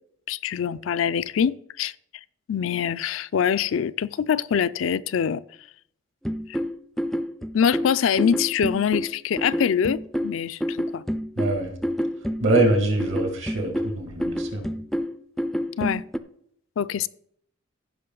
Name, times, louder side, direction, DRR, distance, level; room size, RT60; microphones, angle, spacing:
voice 1, 0.3-1.9 2.5-5.4 6.5-6.6 7.5-11.0 15.8-16.0 16.8-17.1, left 7 dB, 70° left, 0.4 m, -24 dB
sound 1, 6.3-16.2, equal, ahead, 0.4 m, -28 dB
voice 2, 11.4-11.8 12.4-14.7, right 2 dB, 70° right, 2.1 m, -24 dB
15.0 x 5.6 x 3.9 m
head